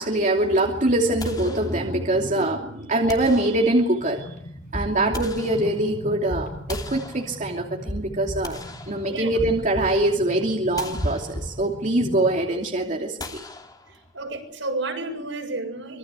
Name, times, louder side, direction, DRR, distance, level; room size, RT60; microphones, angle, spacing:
voice 1, 0.0-4.3 4.7-8.6 8.9-13.4, right 1 dB, 40° right, 1 dB, 2.8 m, -23 dB
sound 1, 1.2-2.2 3.1-4.1 4.8-6.1 6.7-7.8 8.2-9.7 10.1-10.2 10.8-11.8 13.2-14.3, left 2 dB, 20° left, 2.8 m, -41 dB
Walking a Heartbeat Underwater, 4.0-12.4, equal, 45° left, 5.6 m, -36 dB
voice 2, 13.9-16.0, right 2 dB, 80° right, 2 dB, 7.2 m, -31 dB
26.0 x 21.5 x 8.4 m, 0.70 s
head